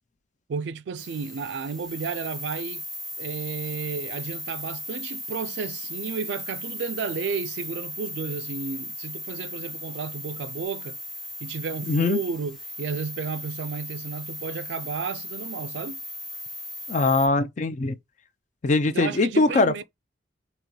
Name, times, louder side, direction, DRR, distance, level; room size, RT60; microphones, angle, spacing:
voice 1, 0.5-2.8 3.2-11.0 11.4-16.0 18.9-19.8, right 5 dB, 65° right, 0.3 m, -32 dB
sound 1, 1.0-17.3, left 1 dB, ahead, 0.6 m, -37 dB
voice 2, 11.9-12.2 16.9-18.0 18.6-19.8, left 3 dB, 40° left, 0.4 m, -22 dB
3.8 x 2.9 x 3.0 m
head